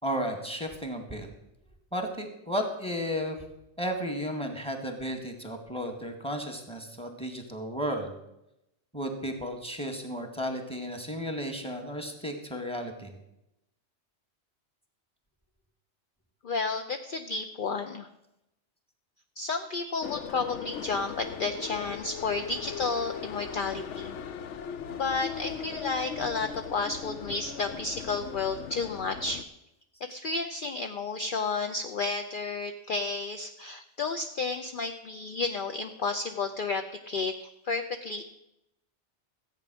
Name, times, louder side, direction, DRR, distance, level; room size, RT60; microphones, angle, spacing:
voice 1, 0.0-1.3 1.9-3.4 3.8-8.1 8.9-13.2, equal, 5° left, 4 dB, 1.8 m, -33 dB
voice 2, 16.4-18.1 19.4-24.2 24.9-29.4 30.1-38.2, left 4 dB, 50° left, 7 dB, 0.8 m, -32 dB
sound 1, 20.0-29.4, left 7 dB, 80° left, 1.0 m, -39 dB
14.5 x 8.5 x 6.2 m, 0.86 s
omnidirectional pair, 1.2 m